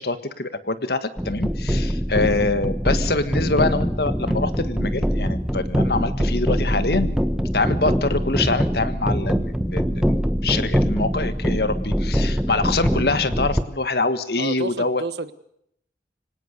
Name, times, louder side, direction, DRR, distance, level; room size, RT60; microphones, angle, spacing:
voice 1, 0.0-7.2 7.5-15.0, left 3 dB, 60° left, 11 dB, 1.6 m, -25 dB
sound 1, 1.2-13.6, equal, 5° right, 1.1 m, -23 dB
voice 2, 14.4-15.3, right 3 dB, 70° right, 13 dB, 1.3 m, -31 dB
25.0 x 18.5 x 6.7 m, 0.74 s
head